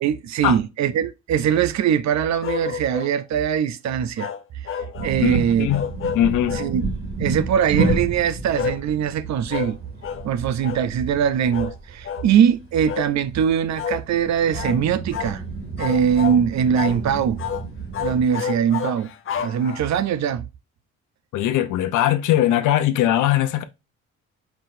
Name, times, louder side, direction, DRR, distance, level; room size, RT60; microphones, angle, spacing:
voice 1, 0.0-4.6 5.0-5.7 6.6-6.8 7.2-9.8 10.2-15.4 15.8-17.4 18.0-19.1 19.4-20.4, right 8 dB, 65° right, 0.6 m, -21 dB
sound 1, 2.4-3.2 4.2-5.2 5.7-6.7 7.8-8.0 8.5-8.8 9.5-9.8 10.0-10.3 10.6-10.9 11.5-11.7 12.0-12.3 12.8-13.1 13.7-14.0 14.5-14.8 15.1-15.4 15.8-16.4 16.7-17.0 17.4-17.6 17.9-20.1, left 7 dB, 45° left, 0.7 m, -29 dB
sound 2, 4.9-18.2, right 4 dB, 30° right, 1.8 m, -31 dB
voice 2, 5.2-5.9 6.1-6.6 21.3-23.6, left 12 dB, 85° left, 0.7 m, -20 dB
4.6 x 3.9 x 2.5 m
cardioid pair, 90°, 30 cm